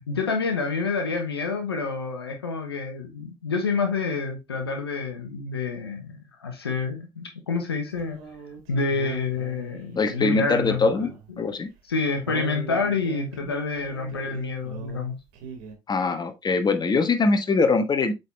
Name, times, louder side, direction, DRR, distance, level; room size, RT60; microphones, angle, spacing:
voice 1, 0.1-8.2 8.7-11.5 11.8-15.2, left 4 dB, 85° left, 1.0 m, -28 dB
sound 1, 8.0-11.3 11.6-11.7 12.3-15.1 15.3-15.8, right 6 dB, 70° right, 1.7 m, -40 dB
voice 2, 9.9-11.1 11.4-11.7 15.9-18.1, left 3 dB, 35° left, 1.3 m, -22 dB
8.0 x 4.0 x 3.3 m
figure-of-eight pair, 50°, 13 cm